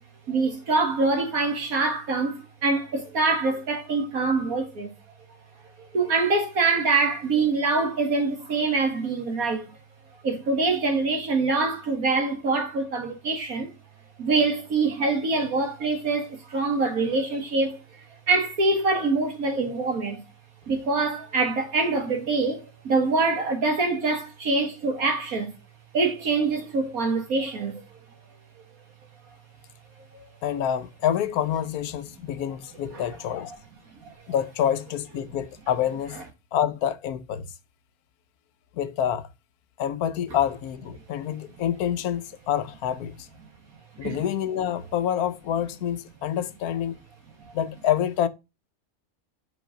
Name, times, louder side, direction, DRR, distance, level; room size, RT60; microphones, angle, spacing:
voice 1, 0.3-4.9 5.9-9.7 10.2-13.7 14.2-17.8 18.3-20.2 20.7-25.5 25.9-27.8 32.9-33.1 44.0-44.2, right 3 dB, 70° right, 2.3 m, -24 dB
voice 2, 30.4-33.5 34.3-36.2 36.5-37.5 38.7-39.3 39.8-43.3 44.0-47.0 47.5-48.3, left 10 dB, 85° left, 1.2 m, -27 dB
6.1 x 5.1 x 5.0 m
omnidirectional pair, 1.6 m